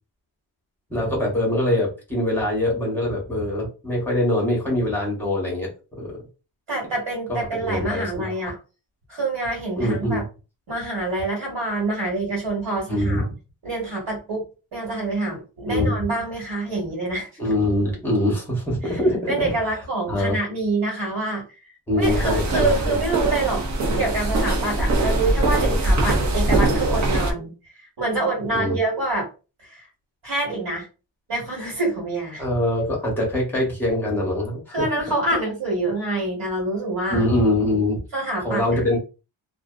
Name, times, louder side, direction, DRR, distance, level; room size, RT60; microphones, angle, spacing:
voice 1, 0.9-5.7 6.0-6.1 7.3-8.5 9.8-10.2 12.9-13.2 15.7-16.0 17.4-19.5 20.1-20.4 21.9-23.0 25.6-26.0 28.5-28.8 32.4-34.8 37.1-38.0 38.4-39.0, left 1 dB, 5° left, -2 dB, 0.8 m, -23 dB
voice 2, 6.7-8.5 9.1-10.2 10.7-13.2 13.6-14.4 14.7-17.3 18.8-19.0 19.3-23.6 24.0-27.5 27.8-29.3 29.6-29.9 30.2-30.9 31.3-32.4 34.7-37.2 38.1-38.8, right 2 dB, 60° right, -3 dB, 1.3 m, -26 dB
sound 1, 22.0-27.3, right 2 dB, 35° right, 0.5 m, -22 dB
2.5 x 2.1 x 2.3 m, 0.32 s
wide cardioid pair, 175°, 49 cm